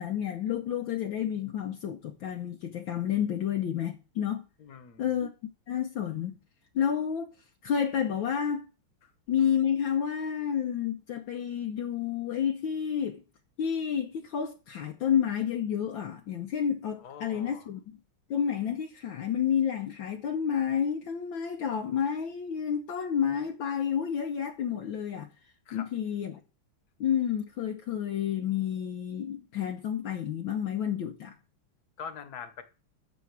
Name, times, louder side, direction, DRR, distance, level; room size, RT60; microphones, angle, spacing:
voice 1, 0.0-4.4 5.0-5.3 5.7-6.3 6.7-7.3 7.6-8.6 9.3-13.2 13.6-18.0 18.3-25.3 25.7-26.4 27.0-31.3, left 8 dB, 70° left, 1.6 m, -30 dB
voice 2, 4.6-5.1 17.0-17.7 25.7-25.9 32.0-32.6, left 7 dB, 50° left, 1.7 m, -43 dB
12.5 x 7.5 x 4.8 m
omnidirectional pair, 2.3 m